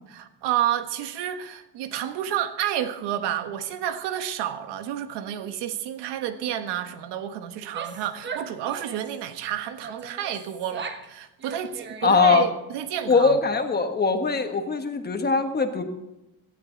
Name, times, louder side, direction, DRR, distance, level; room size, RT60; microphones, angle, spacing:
voice 1, 0.1-13.4, right 11 dB, 90° right, 1.4 m, -30 dB
Female speech woman speaking / Yell, 7.6-9.2 9.8-11.1 11.4-12.4, right 4 dB, 30° right, 1.2 m, -39 dB
voice 2, 12.0-12.5 13.1-15.8, left 4 dB, 25° left, 1.3 m, -21 dB
18.0 x 13.0 x 3.9 m
cardioid pair, 155°, 40 cm